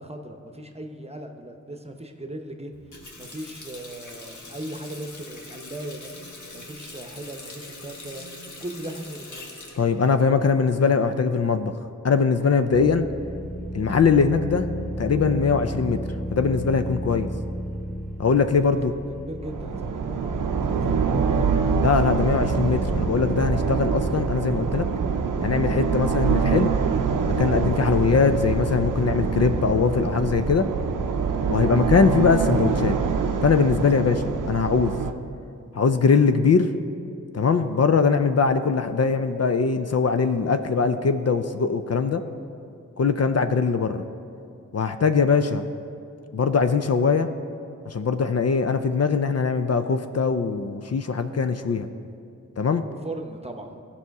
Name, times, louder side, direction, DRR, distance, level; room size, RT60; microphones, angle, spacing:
voice 1, 0.0-6.1 6.5-8.3 8.6-9.6 18.7-21.6 53.0-53.8, right 1 dB, 20° right, 4 dB, 0.9 m, -38 dB
Water tap faucet, 2.7-11.2, left 2 dB, 70° left, 1.4 m, -43 dB
voice 2, 9.8-11.7 12.0-13.1 13.7-14.7 15.0-16.0 16.3-17.3 18.2-18.9 21.8-24.9 25.4-26.7 27.4-30.7 31.5-33.0 33.4-34.9 35.7-36.7 37.3-42.2 43.0-44.0 44.7-45.6 46.3-47.3 47.9-51.9 52.6-52.8, left 5 dB, 55° left, 8 dB, 0.5 m, -21 dB
sound 1, 12.7-32.5, right 1 dB, ahead, 1.1 m, -35 dB
sound 2, 19.4-35.1, right 5 dB, 85° right, 0.6 m, -25 dB
15.5 x 5.6 x 4.7 m, 2.5 s
cardioid pair, 50°, 31 cm